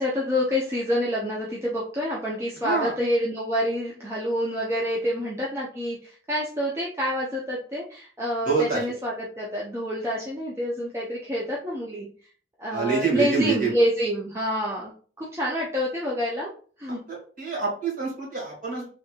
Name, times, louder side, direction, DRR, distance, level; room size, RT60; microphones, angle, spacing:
voice 1, 0.0-12.1 12.6-14.9 15.2-16.5 16.8-17.0, equal, 15° right, -4 dB, 0.5 m, -27 dB
voice 2, 2.6-2.9 8.4-8.8 12.7-13.7 16.9-17.0 17.4-18.9, right 5 dB, 45° right, -4 dB, 1.6 m, -26 dB
3.3 x 2.9 x 2.3 m, 0.42 s
head